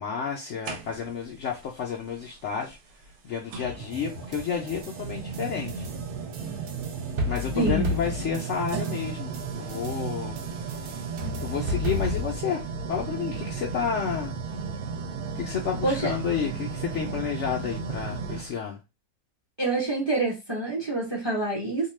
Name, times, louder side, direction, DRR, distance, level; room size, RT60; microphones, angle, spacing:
voice 1, 0.0-2.8 3.2-5.9 7.3-10.4 11.4-14.4 15.3-18.8, left 7 dB, 70° left, 0.7 m, -31 dB
sound 1, 0.6-1.3 2.6-2.7 3.5-18.5, right 5 dB, 85° right, 1.1 m, -34 dB
sound 2, 3.9-12.3, left 1 dB, 65° right, 0.5 m, -34 dB
voice 2, 7.5-7.9 15.8-16.1 19.6-21.9, right 2 dB, 25° right, 0.7 m, -26 dB
2.7 x 2.2 x 3.1 m
omnidirectional pair, 1.6 m